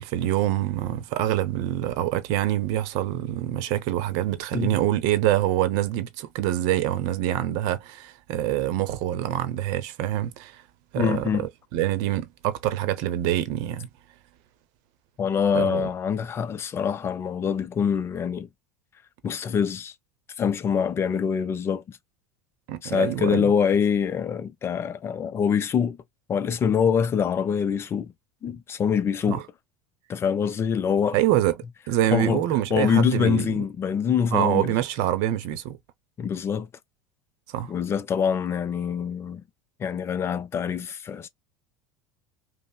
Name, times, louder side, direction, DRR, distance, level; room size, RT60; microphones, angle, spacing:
voice 1, 0.0-10.6 10.9-11.3 11.7-13.9 15.5-15.9 22.7-23.5 29.3-29.4 31.1-31.6 31.9-33.5 34.3-35.8 37.5-37.7, right 13 dB, 60° right, 0.8 m, -25 dB
voice 2, 11.0-11.5 15.2-18.5 19.2-19.9 20.4-22.0 22.8-26.0 26.3-28.1 28.4-29.4 30.1-31.2 32.1-32.4 32.7-34.7 36.2-36.7 37.7-39.4 39.8-41.3, left 7 dB, 30° left, 0.5 m, -25 dB
5.2 x 2.1 x 2.3 m
hypercardioid pair, 80°, 8 cm